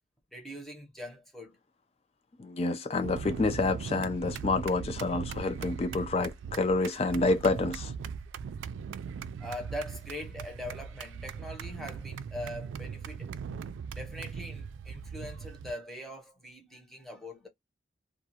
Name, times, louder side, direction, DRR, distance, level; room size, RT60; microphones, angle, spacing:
voice 1, 0.3-1.6 9.4-13.3 13.9-17.5, left 1 dB, ahead, 0.9 m, -42 dB
voice 2, 2.4-7.9, left 3 dB, 35° left, 0.3 m, -28 dB
sound 1, 3.0-15.7, right 6 dB, 90° right, 0.3 m, -39 dB
2.4 x 2.3 x 2.8 m
head